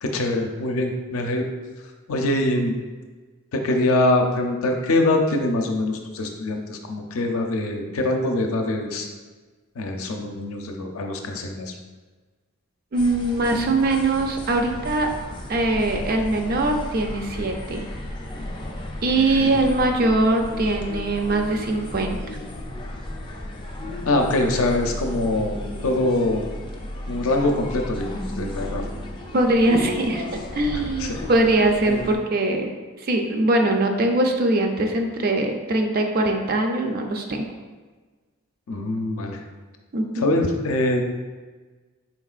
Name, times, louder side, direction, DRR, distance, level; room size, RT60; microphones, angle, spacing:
voice 1, 0.0-1.4 2.1-2.8 3.5-9.1 9.8-11.7 19.1-19.5 24.0-25.6 25.8-26.4 27.1-28.8 30.7-31.2 31.9-32.1 38.7-39.4 40.2-41.0, left 2 dB, 75° left, 3 dB, 0.5 m, -24 dB
sound 1, 12.9-32.2, left 1 dB, 25° left, 0.4 m, -34 dB
voice 2, 12.9-15.1 15.5-17.8 19.0-22.2 29.3-30.2 30.6-32.7 33.0-37.4 39.9-40.3, right 2 dB, 45° right, 3 dB, 0.4 m, -22 dB
4.4 x 3.7 x 2.4 m, 1.3 s
head